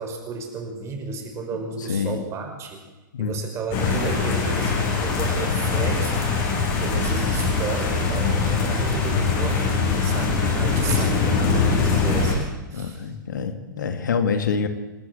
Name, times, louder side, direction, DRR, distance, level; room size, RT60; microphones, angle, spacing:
voice 1, 0.0-2.8 3.2-13.1, right 4 dB, 25° right, 4 dB, 5.3 m, -33 dB
voice 2, 1.9-2.2 3.1-3.3 12.7-14.7, left 6 dB, 65° left, 8 dB, 2.2 m, -26 dB
sound 1, 3.7-12.4, left 4 dB, 40° left, 7.4 m, -22 dB
28.0 x 13.0 x 7.8 m, 1.2 s
figure-of-eight pair, 105°, 11 cm